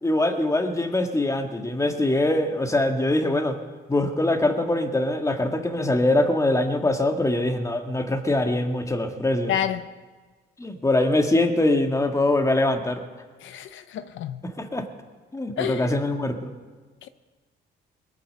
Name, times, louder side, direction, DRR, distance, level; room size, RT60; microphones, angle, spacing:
voice 1, 0.0-3.6 3.9-9.5 10.6-13.0 14.4-14.8 15.3-16.5, left 1 dB, 15° left, 1.7 m, -23 dB
voice 2, 9.5-9.9 13.4-14.4 15.6-15.9 17.0-17.1, left 9 dB, 75° left, 0.7 m, -29 dB
21.0 x 8.5 x 6.7 m
cardioid pair, 90°, 20 cm